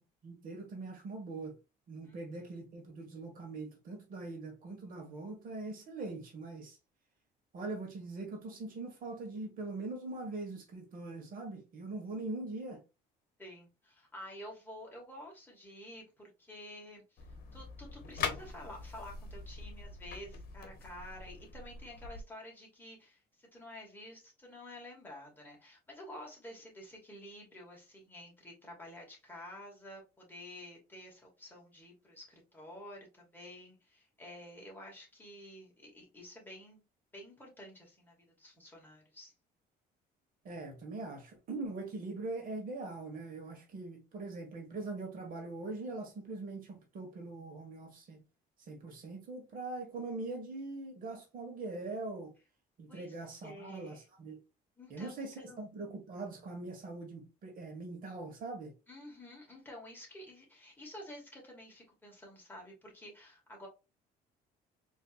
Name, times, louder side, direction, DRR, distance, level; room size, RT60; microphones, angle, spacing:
voice 1, 0.2-1.5 1.9-6.8 7.5-12.8 40.4-48.2 48.6-52.3 52.8-54.4 54.9-58.7, right 3 dB, 55° right, 1.5 m, -42 dB
voice 2, 13.4-17.3 17.5-36.8 37.1-39.3 49.9-50.0 52.9-53.2 53.4-54.0 54.8-55.6 58.9-63.7, left 1 dB, 10° left, 2.0 m, -50 dB
sound 1, 17.2-22.2, left 5 dB, 65° left, 1.0 m, -42 dB
4.1 x 3.2 x 2.4 m
cardioid pair, 110°, 17 cm